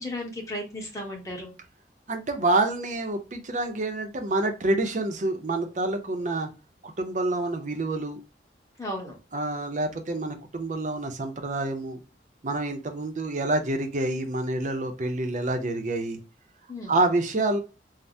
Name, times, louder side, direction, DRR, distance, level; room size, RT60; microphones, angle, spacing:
voice 1, 0.0-1.5 8.8-9.2 16.7-16.9, left 1 dB, 20° left, 0 dB, 0.9 m, -34 dB
voice 2, 2.1-6.5 6.8-8.2 9.3-12.0 12.4-16.2 16.9-17.6, right 2 dB, 45° right, 5 dB, 0.5 m, -27 dB
3.3 x 2.0 x 2.5 m, 0.31 s
head